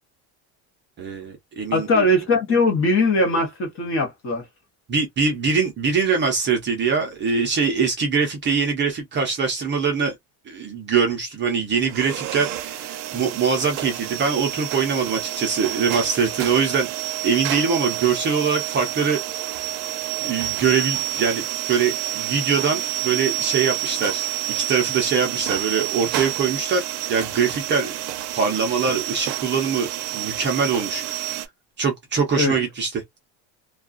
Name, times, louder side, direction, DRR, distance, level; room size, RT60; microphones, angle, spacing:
voice 1, 1.0-2.0 4.9-10.1 10.5-16.9 17.2-19.2 20.2-21.4 21.7-26.8 27.1-27.9 28.3-31.4 31.8-33.3, right 5 dB, 25° right, 0.6 m, -23 dB
voice 2, 1.7-4.4 32.4-32.5, left 2 dB, 30° left, 0.9 m, -20 dB
sound 1, 11.8-31.5, right 15 dB, 65° right, 0.6 m, -29 dB
2.3 x 2.3 x 2.3 m
cardioid pair, 175°, 43 cm